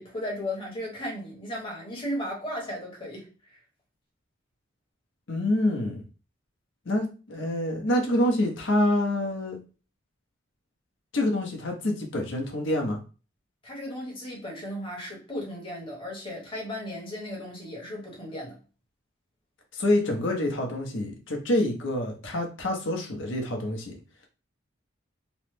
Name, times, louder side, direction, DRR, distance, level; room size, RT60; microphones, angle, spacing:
voice 1, 0.0-3.6 13.6-18.6, left 1 dB, 25° left, 1.0 m, -35 dB
voice 2, 5.3-6.1 6.9-9.6 11.1-13.0 19.7-23.9, left 1 dB, 60° left, 0.8 m, -26 dB
3.1 x 2.0 x 3.2 m
head